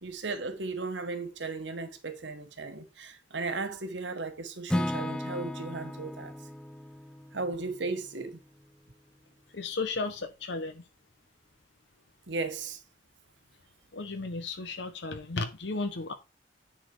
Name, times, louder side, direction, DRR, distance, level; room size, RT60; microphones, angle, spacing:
voice 1, 0.0-6.3 7.3-8.4 12.3-12.8, right 3 dB, 80° right, 1.3 m, -36 dB
Acoustic guitar / Strum, 4.7-8.7, left 1 dB, 5° left, 0.4 m, -36 dB
voice 2, 9.5-10.8 13.9-16.1, left 3 dB, 70° left, 0.9 m, -34 dB
10.0 x 4.2 x 4.8 m
head